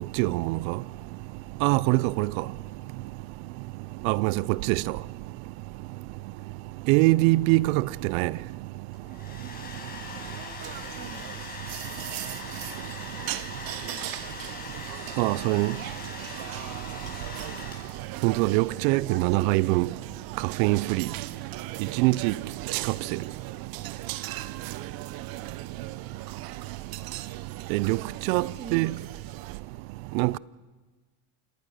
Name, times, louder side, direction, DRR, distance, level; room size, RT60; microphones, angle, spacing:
voice 1, 0.2-0.8 1.6-2.4 4.0-4.8 6.9-8.3 15.2-15.7 18.2-19.9 20.4-21.1 21.8-22.4 22.9-23.2 27.7-28.0 28.3-28.5 28.7-28.9 30.1-30.4, right 21 dB, 75° right, 0.7 m, -23 dB
Domestic sounds home sounds, 8.9-18.1, left 3 dB, 20° left, 6.5 m, -41 dB
voice 2, 10.2-11.4 13.5-15.3 17.0-17.2 18.7-19.6 28.4-29.1, right 6 dB, 25° right, 1.1 m, -45 dB
sound 1, 10.6-29.6, right 15 dB, 55° right, 1.0 m, -39 dB
27.0 x 20.0 x 6.5 m
supercardioid pair, 110°, 41 cm